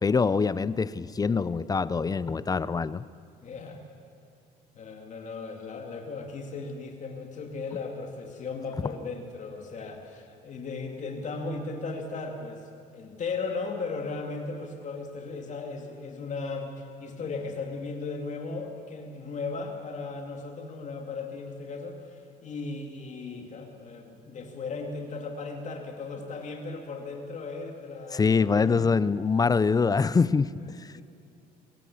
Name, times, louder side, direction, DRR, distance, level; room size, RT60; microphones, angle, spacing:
voice 1, 0.0-3.1 28.1-31.0, left 5 dB, 20° left, 17 dB, 0.5 m, -24 dB
voice 2, 3.4-3.8 4.7-12.6 12.9-28.8 30.9-31.0, left 4 dB, 45° left, 3 dB, 2.4 m, -36 dB
23.0 x 16.0 x 8.5 m, 2.3 s
cardioid pair, 110°, 17 cm